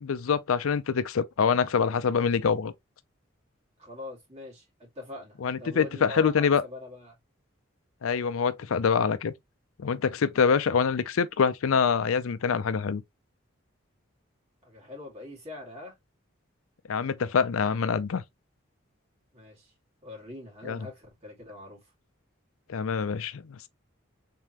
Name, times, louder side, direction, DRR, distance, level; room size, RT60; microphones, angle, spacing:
voice 1, 0.0-2.7 5.4-6.6 8.0-9.3 9.8-13.0 16.9-18.2 20.6-20.8 22.7-23.7, left 6 dB, 90° left, 0.5 m, -25 dB
voice 2, 3.8-7.2 14.6-15.9 19.3-19.7 20.0-21.9, left 2 dB, 30° right, 2.2 m, -43 dB
3.7 x 3.6 x 2.9 m
head